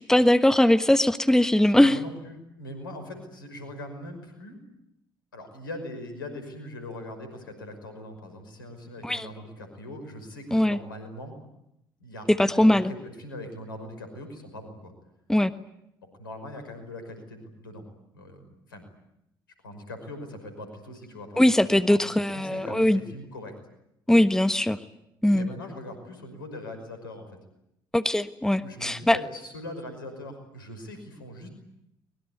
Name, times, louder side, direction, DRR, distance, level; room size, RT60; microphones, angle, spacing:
voice 1, 0.0-2.0 9.0-9.3 10.5-10.8 12.3-12.9 15.3-15.5 21.4-23.0 24.1-24.8 25.2-25.5 27.9-29.2, left 1 dB, 5° left, 11 dB, 1.4 m, -20 dB
voice 2, 1.7-4.6 5.3-11.4 12.0-14.9 16.2-17.9 18.1-18.9 19.6-21.5 21.9-23.6 25.3-27.3 28.6-31.5, left 1 dB, 85° left, 7 dB, 5.5 m, -41 dB
24.0 x 22.0 x 9.6 m, 0.81 s
figure-of-eight pair, 50°, 11 cm